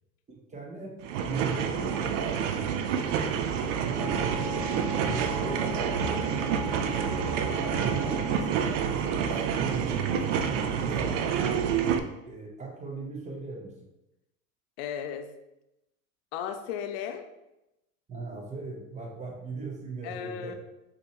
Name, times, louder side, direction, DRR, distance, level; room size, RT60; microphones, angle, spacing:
voice 1, 0.3-1.0 1.2-2.2 3.8-4.3 5.0-5.9 6.8-7.3 7.5-11.6 12.2-13.7 18.1-20.5, right 3 dB, 15° right, -1 dB, 1.0 m, -38 dB
sound 1, 1.0-12.0, right 7 dB, 60° right, 0.5 m, -28 dB
Wind instrument woodwind instrument, 3.9-8.5, left 1 dB, 15° left, 1.3 m, -39 dB
voice 2, 14.8-15.3 16.3-17.2 20.0-20.5, left 8 dB, 45° left, 7 dB, 0.6 m, -35 dB
5.3 x 2.8 x 3.0 m, 0.93 s
hypercardioid pair, 85°, 42 cm